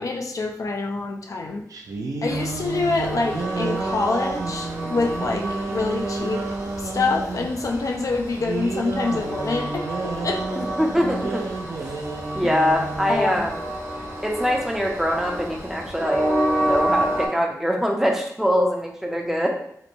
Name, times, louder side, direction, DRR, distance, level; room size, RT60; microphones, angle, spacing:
voice 1, 0.0-1.6 2.2-6.4 6.8-10.6 13.1-13.5, left 3 dB, 65° left, 2 dB, 0.3 m, -26 dB
sound 1, 1.7-7.5 8.3-13.4, right 3 dB, 70° right, 0.4 m, -31 dB
Train, 2.3-17.3, right 1 dB, 40° right, 0.8 m, -30 dB
voice 2, 10.6-11.4 11.8-11.9 12.3-13.5 14.2-16.3 16.6-19.5, equal, 5° right, 0 dB, 0.5 m, -23 dB
2.9 x 2.1 x 2.5 m, 0.74 s
wide cardioid pair, 80°, 6 cm